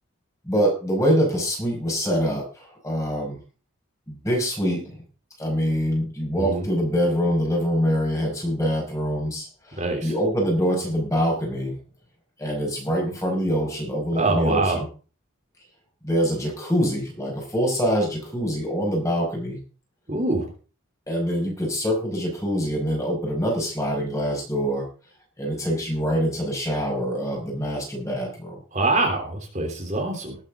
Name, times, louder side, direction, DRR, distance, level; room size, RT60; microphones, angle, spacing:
voice 1, 0.4-3.4 4.1-5.0 5.4-11.7 12.4-14.9 16.0-19.6 21.1-24.9 25.4-28.6, equal, 15° left, 0 dB, 5.4 m, -25 dB
voice 2, 9.8-10.1 14.1-14.8 20.1-20.5 28.7-30.4, right 2 dB, 35° right, 1 dB, 3.2 m, -24 dB
20.0 x 8.7 x 3.7 m, 0.36 s
head